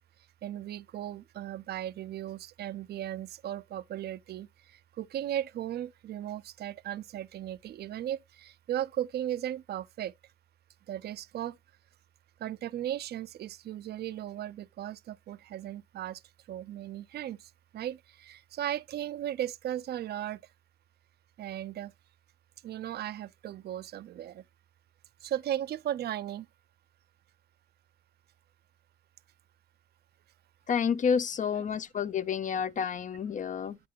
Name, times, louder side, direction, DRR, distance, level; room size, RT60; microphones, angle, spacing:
voice 1, 0.4-10.1 10.9-11.6 12.4-16.2 16.5-20.4 21.4-21.9 22.6-24.4 25.2-26.5, right 11 dB, 55° right, 0.5 m, -36 dB
voice 2, 30.7-33.8, left 7 dB, 40° left, 0.5 m, -29 dB
8.3 x 6.0 x 2.8 m
cardioid pair, 90°, 20 cm